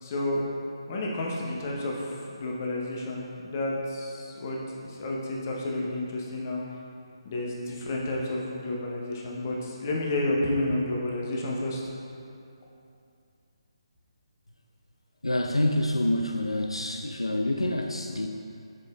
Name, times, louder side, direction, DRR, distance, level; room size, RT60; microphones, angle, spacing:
voice 1, 0.0-0.5 0.9-6.6 7.2-11.8, left 1 dB, 30° left, -3 dB, 0.9 m, -31 dB
voice 2, 15.2-18.3, left 1 dB, 80° left, 3 dB, 0.4 m, -27 dB
7.5 x 6.0 x 2.4 m, 2.5 s
figure-of-eight pair, 145°, 3 cm